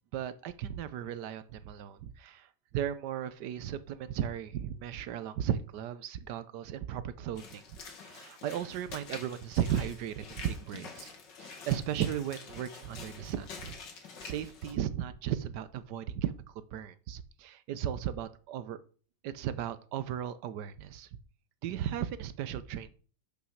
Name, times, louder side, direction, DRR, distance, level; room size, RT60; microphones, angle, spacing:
voice 1, 0.1-7.6 8.0-11.1 11.4-13.8 14.2-18.8 19.2-21.1 21.6-22.9, right 10 dB, 75° right, 1.2 m, -36 dB
Walk footsteps / Splash splatter, 7.4-14.7, left 5 dB, 85° left, 2.2 m, -47 dB
6.3 x 5.6 x 6.3 m
omnidirectional pair, 1.9 m